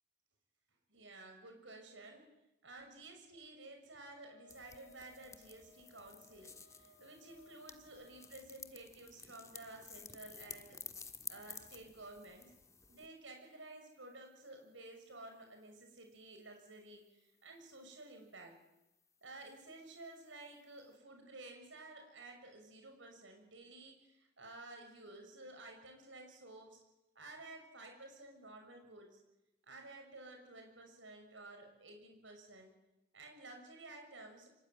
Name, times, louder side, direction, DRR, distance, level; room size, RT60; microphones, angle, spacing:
voice 1, 0.9-2.3 2.6-10.8 11.3-12.6 12.9-18.5 19.2-26.8 27.1-29.2 29.6-32.7 33.1-34.5, right 2 dB, 80° right, 4 dB, 6.6 m, -53 dB
Wind instrument woodwind instrument, 4.0-8.4, left 4 dB, 85° left, 3.2 m, -64 dB
sound 1, 4.5-13.1, left 5 dB, 15° left, 1.5 m, -53 dB
26.5 x 22.5 x 9.4 m, 0.93 s
head